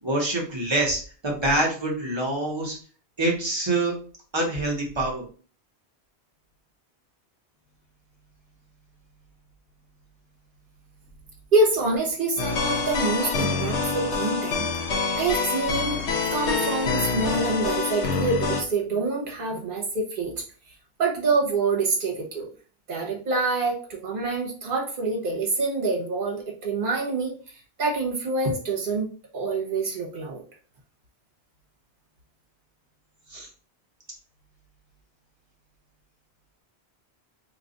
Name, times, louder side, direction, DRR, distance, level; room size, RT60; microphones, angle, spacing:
voice 1, 0.0-2.8 3.2-3.9 4.3-5.2 33.3-33.5, right 2 dB, 25° right, -2 dB, 1.1 m, -25 dB
voice 2, 11.5-14.6 15.1-16.0 16.3-20.4 21.0-22.5 22.9-27.3 27.8-29.1 29.3-30.4, right 3 dB, 50° right, -2 dB, 1.2 m, -26 dB
sound 1, 12.4-18.6, left 4 dB, 80° left, 0.9 m, -26 dB
2.8 x 2.5 x 3.8 m, 0.40 s
omnidirectional pair, 1.1 m